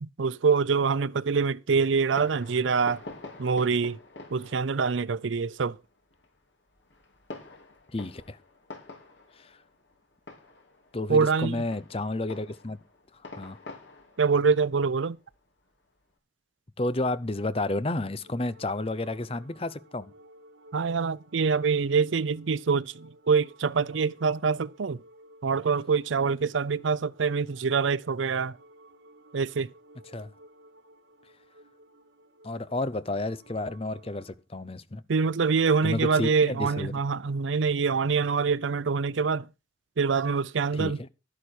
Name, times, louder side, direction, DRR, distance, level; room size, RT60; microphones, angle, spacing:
voice 1, 0.0-3.0 3.4-4.0 4.3-5.8 11.1-11.6 14.2-15.2 20.7-25.0 25.4-28.6 29.3-29.7 35.1-39.5 40.0-41.0, right 5 dB, 85° right, 0.5 m, -25 dB
Fireworks, 1.9-16.1, left 2 dB, 70° left, 4.2 m, -48 dB
voice 2, 7.9-8.4 9.4-9.6 10.9-12.8 13.4-13.6 16.8-20.1 30.1-30.3 32.4-35.0 35.8-36.9 40.7-41.1, left 2 dB, 30° left, 0.7 m, -31 dB
sound 1, 16.8-34.4, right 1 dB, 65° right, 1.9 m, -56 dB
12.0 x 11.0 x 4.5 m
head